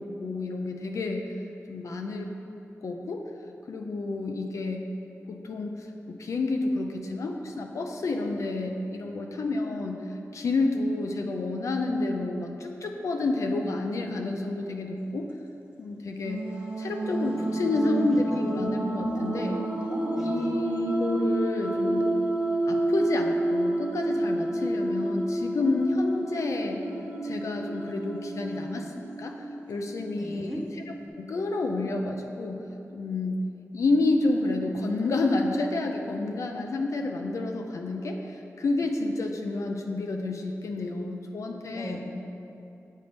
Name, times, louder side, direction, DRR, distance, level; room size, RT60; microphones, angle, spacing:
voice 1, 0.0-1.3 1.7-2.3 2.8-3.3 3.7-4.9 5.3-10.0 10.3-15.3 15.8-16.4 16.8-19.6 20.2-22.1 22.7-26.8 27.2-28.9 29.2-30.8 31.2-32.6 32.9-33.5 33.7-42.0, left 2 dB, 75° left, 3 dB, 0.4 m, -29 dB
sound 1, 16.2-31.1, right 1 dB, 25° right, 1.1 m, -30 dB
voice 2, 17.3-17.6 17.9-18.4 20.2-20.5 30.2-30.6 41.8-42.0, equal, 5° right, 0 dB, 0.7 m, -39 dB
8.2 x 3.9 x 3.4 m, 2.8 s
wide cardioid pair, 85°, 5 cm